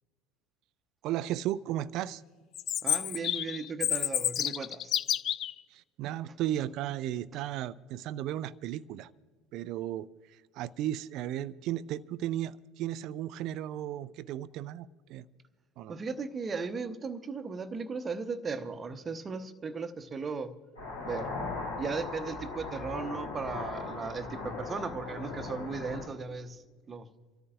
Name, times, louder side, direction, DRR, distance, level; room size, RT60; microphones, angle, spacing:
voice 1, 1.0-2.2 5.7-9.1 9.5-15.3 15.8-16.0, right 12 dB, 50° right, 19 dB, 0.4 m, -35 dB
Chirp tweet, 2.5-5.5, left 11 dB, 45° left, 0.4 m, -30 dB
voice 2, 2.8-4.9 15.9-20.5 21.0-21.3 21.8-27.1, right 4 dB, 25° right, 11 dB, 0.9 m, -36 dB
sound 1, 20.8-26.1, left 3 dB, 75° left, 3.6 m, -38 dB
28.0 x 13.5 x 2.5 m, 1.4 s
figure-of-eight pair, 70°, 0 cm